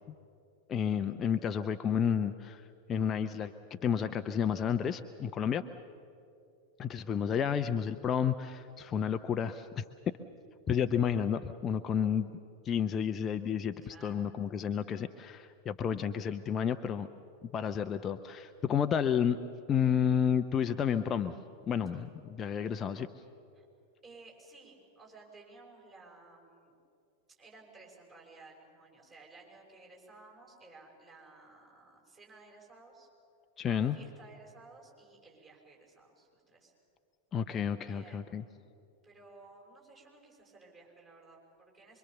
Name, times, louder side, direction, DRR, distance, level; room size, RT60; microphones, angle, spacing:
voice 1, 0.7-2.6 2.9-3.5 3.8-5.6 6.8-9.8 10.7-12.3 12.6-17.1 17.5-19.4 19.7-21.3 21.7-23.1 33.6-34.0 37.3-38.4, left 8 dB, 25° left, 9 dB, 0.6 m, -31 dB
voice 2, 13.8-14.3 23.5-23.7 24.0-26.8 27.4-33.1 33.6-36.7 37.9-38.6 39.0-42.0, right 3 dB, 25° right, -1 dB, 6.2 m, -56 dB
25.0 x 23.5 x 7.0 m, 2.6 s
figure-of-eight pair, 90°, 0 cm